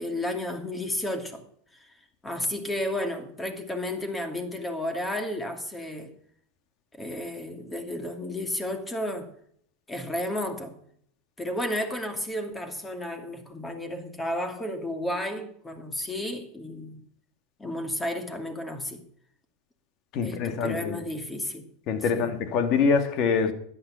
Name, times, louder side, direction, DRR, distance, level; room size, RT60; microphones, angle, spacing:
voice 1, 0.0-1.4 1.7-1.9 2.2-6.1 6.9-9.3 9.9-10.8 11.4-17.0 17.6-19.0 20.2-21.7 22.1-22.3, left 1 dB, 15° left, 2.6 m, -32 dB
voice 2, 20.1-21.0 21.9-23.5, left 5 dB, 50° left, 2.5 m, -25 dB
13.5 x 9.8 x 5.9 m
hypercardioid pair, 110°, 0 cm